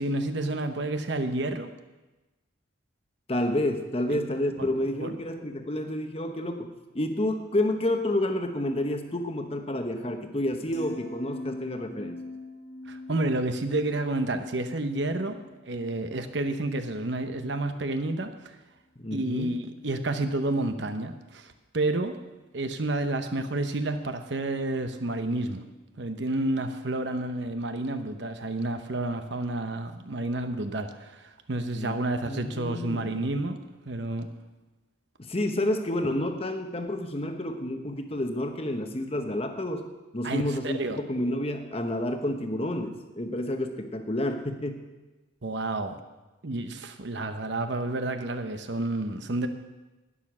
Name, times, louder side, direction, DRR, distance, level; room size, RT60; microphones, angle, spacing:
voice 1, 0.0-1.7 4.1-4.2 4.6-4.7 5.0-5.2 12.9-18.6 19.1-22.2 22.5-25.7 26.0-33.6 33.9-34.3 40.2-41.0 45.4-46.0 46.4-49.5, right 2 dB, 65° right, 8 dB, 0.9 m, -30 dB
voice 2, 3.3-12.2 19.0-19.6 31.8-33.3 35.2-39.9 40.1-44.8, left 1 dB, 30° left, 6 dB, 0.9 m, -30 dB
sound 1, 10.7-17.0 17.3-17.7, left 2 dB, 75° left, 2.2 m, -43 dB
11.5 x 9.9 x 6.1 m, 1.1 s
head